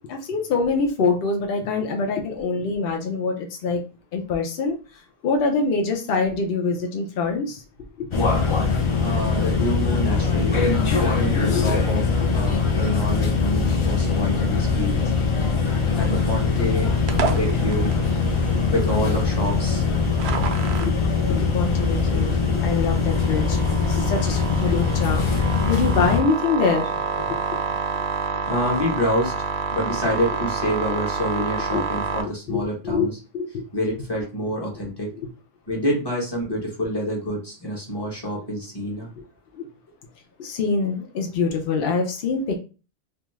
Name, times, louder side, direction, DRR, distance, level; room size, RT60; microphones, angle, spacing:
voice 1, 0.1-3.8 4.1-7.6 8.0-8.1 11.4-11.6 20.8-26.9 27.3-27.4 31.7-31.8 32.5-33.1 33.3-33.6 39.2-39.3 39.5-39.7 40.4-42.6, left 4 dB, 70° left, 2 dB, 0.8 m, -25 dB
sound 1, 8.1-26.2, left 5 dB, 45° left, 0.4 m, -22 dB
voice 2, 9.0-10.7 11.0-12.0 12.3-15.1 16.0-16.9 17.3-17.9 18.7-19.8 28.5-29.3 29.7-33.2 33.7-35.1 35.7-39.1, equal, 25° left, -2 dB, 0.9 m, -27 dB
sound 2, 17.1-32.2, right 5 dB, 80° right, 0.8 m, -29 dB
2.5 x 2.3 x 3.0 m, 0.33 s
omnidirectional pair, 1.0 m